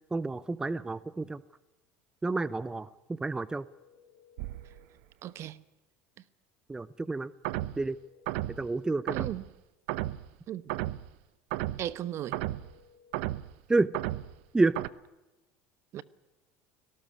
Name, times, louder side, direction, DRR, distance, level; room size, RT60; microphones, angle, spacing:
voice 1, 0.1-1.4 2.2-3.7 6.7-7.3 7.8-8.0 8.5-9.3 13.7-13.9 14.5-14.7, right 3 dB, 10° right, 0.6 m, -29 dB
sound 1, 3.5-4.9 7.7-9.2 12.0-13.4, left 6 dB, 80° left, 4.0 m, -61 dB
sound 2, 4.4-4.8 7.4-7.8 8.3-8.6 9.1-9.5 9.9-10.2 10.7-11.1 11.5-11.9 12.3-12.7 13.1-13.5 13.9-14.3 14.8-14.9, right 16 dB, 80° right, 0.8 m, -33 dB
voice 2, 5.2-5.6 9.1-9.4 10.5-10.8 11.8-12.4 15.9-16.0, right 12 dB, 50° right, 1.0 m, -36 dB
19.0 x 17.5 x 9.5 m
supercardioid pair, 115°, 6 cm